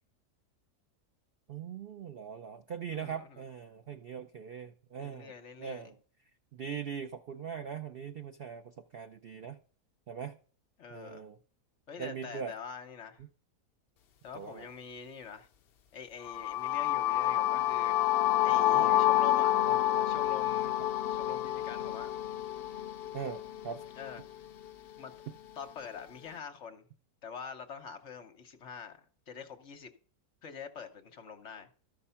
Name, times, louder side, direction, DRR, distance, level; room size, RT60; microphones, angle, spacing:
voice 1, 1.5-5.3 5.6-6.0 6.5-9.6 10.1-10.3 10.9-11.4 12.0-12.5 14.3-14.7 18.5-19.1 19.5-20.1 23.1-23.8, right 7 dB, 70° right, 0.5 m, -41 dB
voice 2, 2.9-3.4 5.0-5.9 10.8-11.2 11.9-13.2 14.2-15.5 15.9-18.2 18.4-19.5 20.0-22.1 24.0-24.2 25.0-25.1 25.6-26.8 27.2-29.0 29.3-29.9 30.4-31.7, left 6 dB, 50° left, 1.1 m, -45 dB
sound 1, 16.2-24.2, left 14 dB, 80° left, 0.5 m, -28 dB
13.0 x 5.5 x 5.7 m
omnidirectional pair, 1.7 m